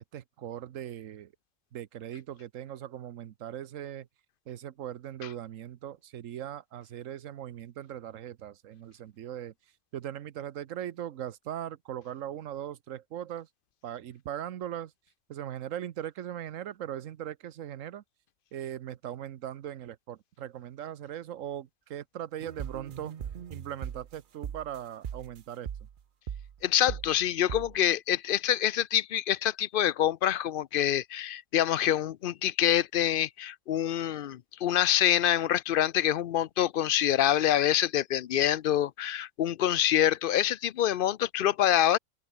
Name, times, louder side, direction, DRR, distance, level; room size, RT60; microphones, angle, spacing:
voice 1, 0.1-1.3 1.7-4.1 4.5-9.5 9.9-13.5 13.8-14.9 15.3-18.0 18.5-23.1 23.5-25.7, right 11 dB, 75° right, 1.2 m, -39 dB
sound 1, 22.4-24.2 24.4-24.8 25.0-25.4 25.7-26.0 26.3-26.6 26.9-27.2 27.5-27.8, right 8 dB, 50° right, 0.8 m, -39 dB
voice 2, 26.6-42.0, left 11 dB, 60° left, 0.6 m, -26 dB
open air
omnidirectional pair, 1.4 m